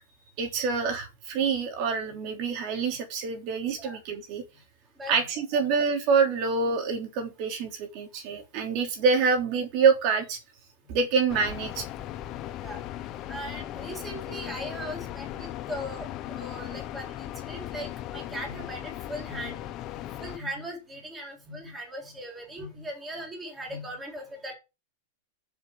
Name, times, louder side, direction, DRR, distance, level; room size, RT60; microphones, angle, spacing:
voice 1, 0.4-4.4 5.1-10.4 10.9-11.8, right 5 dB, 40° right, 3.4 m, -26 dB
sound 1, 11.3-20.4, left 13 dB, 30° left, 1.0 m, -38 dB
voice 2, 12.6-19.6 20.2-24.5, equal, 10° right, 4.1 m, -39 dB
7.4 x 7.3 x 6.3 m
supercardioid pair, 155°, 0 cm